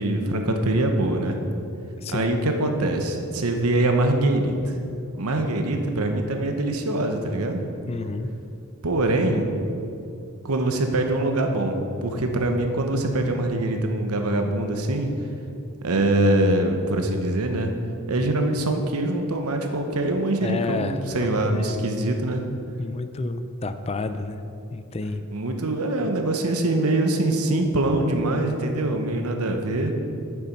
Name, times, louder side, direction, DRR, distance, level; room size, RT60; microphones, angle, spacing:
voice 1, 0.0-1.4 2.1-4.8 5.2-7.6 8.8-9.6 10.4-15.1 15.8-17.7 18.1-22.4 25.3-29.9, right 2 dB, 85° right, 4 dB, 1.0 m, -23 dB
voice 2, 2.0-2.3 7.9-8.3 20.4-21.9 22.8-24.4 24.7-25.3, left 3 dB, 30° left, 10 dB, 0.4 m, -30 dB
8.5 x 7.3 x 5.3 m, 2.7 s
head